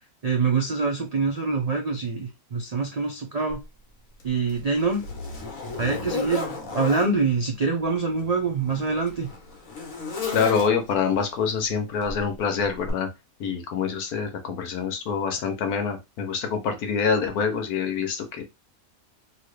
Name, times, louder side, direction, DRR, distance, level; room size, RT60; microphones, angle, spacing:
voice 1, 0.2-3.6 4.2-5.0 5.8-9.3, right 4 dB, 70° right, 2 dB, 0.3 m, -25 dB
Zipper (clothing), 3.5-3.6 4.2-7.1 8.1-11.1 12.0-12.3 12.9-13.0, left 4 dB, 65° left, 1.4 m, -34 dB
voice 2, 10.3-13.1 13.4-18.4, left 6 dB, 85° left, 6 dB, 1.3 m, -26 dB
3.0 x 2.8 x 3.1 m, 0.23 s
omnidirectional pair, 1.6 m